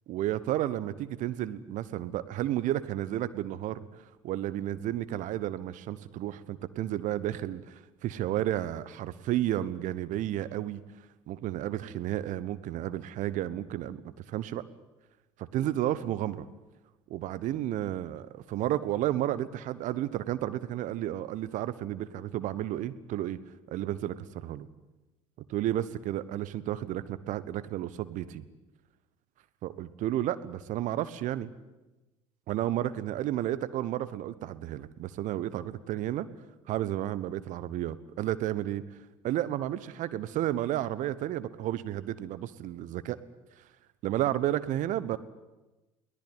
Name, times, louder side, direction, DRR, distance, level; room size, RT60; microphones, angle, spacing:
voice 1, 0.1-10.8 11.3-14.6 15.4-16.5 17.1-23.4 23.7-24.7 25.5-28.4 29.6-31.5 32.5-36.3 36.7-38.8 39.2-43.2 44.0-45.2, right 13 dB, 50° right, 16 dB, 1.2 m, -32 dB
22.5 x 17.5 x 9.7 m, 1.1 s
figure-of-eight pair, 55°, 16 cm